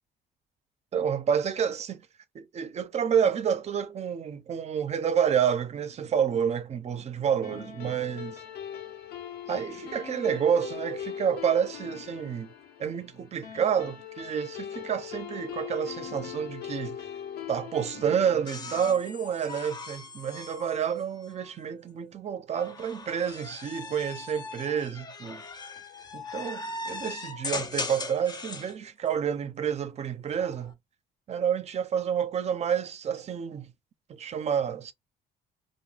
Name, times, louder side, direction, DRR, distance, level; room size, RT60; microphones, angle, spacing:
voice 1, 0.9-2.1 2.3-8.3 9.5-12.5 12.8-17.1 17.5-25.4 26.1-30.7 31.3-33.7 34.1-34.9, right 8 dB, 40° right, 0.6 m, -29 dB
sound 1, 7.4-20.2, left 10 dB, 70° left, 0.9 m, -41 dB
sound 2, 18.5-21.7 22.5-28.7 30.2-30.7, left 3 dB, 25° left, 0.5 m, -39 dB
2.2 x 2.1 x 3.2 m
cardioid pair, 110°, 17 cm